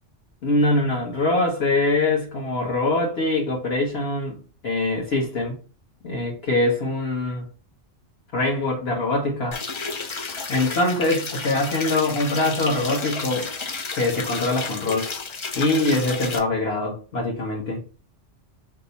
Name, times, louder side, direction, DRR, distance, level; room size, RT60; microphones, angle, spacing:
voice 1, 0.4-4.4 4.6-5.6 6.0-7.4 8.3-9.6 10.5-13.5 13.9-15.1 15.6-17.8, left 2 dB, 60° left, 1.2 m, -23 dB
sound 1, 9.5-16.4, left 4 dB, 45° left, 0.4 m, -31 dB
3.3 x 2.9 x 4.0 m
omnidirectional pair, 1.2 m